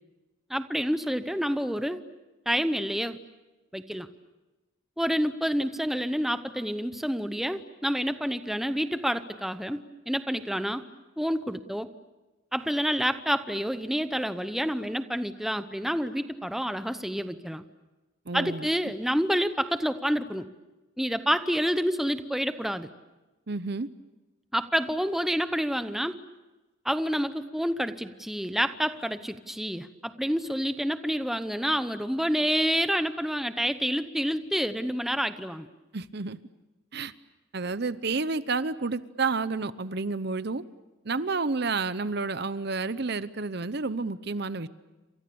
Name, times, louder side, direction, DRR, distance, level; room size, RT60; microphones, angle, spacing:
voice 1, 0.5-2.0 2.5-3.2 3.7-4.1 5.0-9.8 10.1-10.8 11.2-11.9 12.5-17.6 18.3-20.4 21.0-22.9 24.5-26.2 26.8-35.7, equal, ahead, 10 dB, 0.8 m, -28 dB
voice 2, 18.3-18.7 23.5-23.9 35.9-36.4 36.9-37.1 37.5-40.6 41.0-44.7, right 4 dB, 50° right, 15 dB, 0.8 m, -30 dB
29.0 x 26.5 x 7.0 m, 1.1 s
head